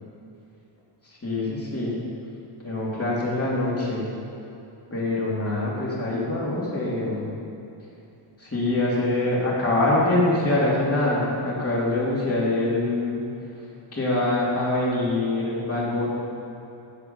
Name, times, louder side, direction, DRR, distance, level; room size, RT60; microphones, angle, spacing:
voice 1, 1.2-1.9 2.6-4.1 4.9-7.3 8.4-13.2 13.9-16.1, left 2 dB, 30° left, -6 dB, 2.9 m, -24 dB
14.5 x 4.9 x 6.8 m, 2.8 s
wide cardioid pair, 160°, 50 cm